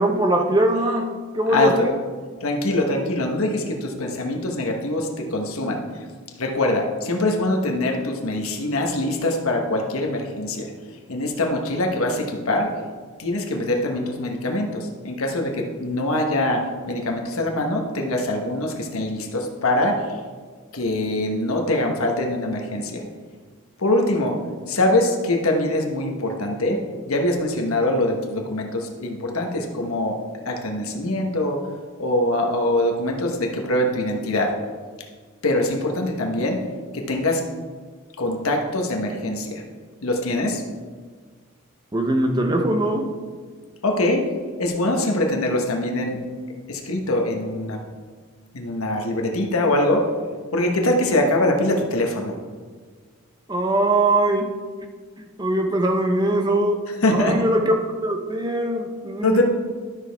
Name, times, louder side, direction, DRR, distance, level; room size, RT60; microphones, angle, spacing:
voice 1, 0.0-1.9 41.9-43.1 53.5-54.5 55.4-56.8 57.1-57.7 58.0-59.4, right 1 dB, 20° right, 4 dB, 0.7 m, -21 dB
voice 2, 1.5-1.9 2.4-5.8 6.4-10.7 11.1-12.7 13.2-20.1 20.7-23.0 23.8-24.4 24.7-26.8 27.1-31.6 32.0-34.6 35.4-36.6 36.9-37.4 38.2-39.6 40.0-40.6 43.8-44.3 44.6-46.2 46.7-47.8 48.5-50.1 50.5-52.3 57.0-57.5 59.2-59.4, left 1 dB, 80° left, 1 dB, 1.2 m, -23 dB
12.0 x 6.5 x 3.5 m, 1.5 s
head